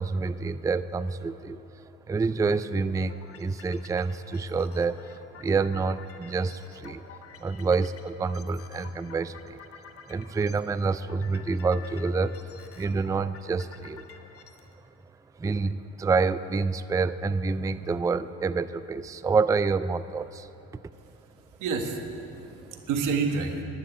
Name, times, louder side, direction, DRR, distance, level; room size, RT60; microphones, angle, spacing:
voice 1, 0.0-1.6 2.1-7.1 7.4-9.6 10.0-12.4 12.7-14.1 15.4-20.5, right 4 dB, 10° right, 14 dB, 0.3 m, -28 dB
sound 1, 3.0-14.7, left 6 dB, 50° left, 1.2 m, -50 dB
voice 2, 21.6-23.6, right 4 dB, 90° right, 5 dB, 1.5 m, -29 dB
11.5 x 9.7 x 9.8 m, 3.0 s
cardioid pair, 90°, 30 cm